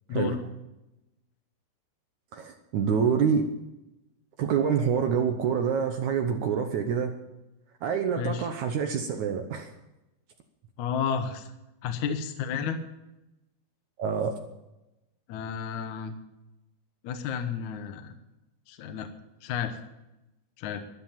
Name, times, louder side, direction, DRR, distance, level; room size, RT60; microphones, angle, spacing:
voice 1, 0.1-0.4 8.2-8.5 10.8-11.5 11.8-12.8 15.3-16.1 17.0-18.1 18.7-19.1 19.4-19.8 20.6-20.8, left 7 dB, 70° left, 7 dB, 1.9 m, -31 dB
voice 2, 2.3-3.4 4.4-7.2 7.8-9.7 14.0-14.4, right 7 dB, 70° right, 5 dB, 1.8 m, -26 dB
13.5 x 11.5 x 7.4 m, 0.95 s
omnidirectional pair, 4.7 m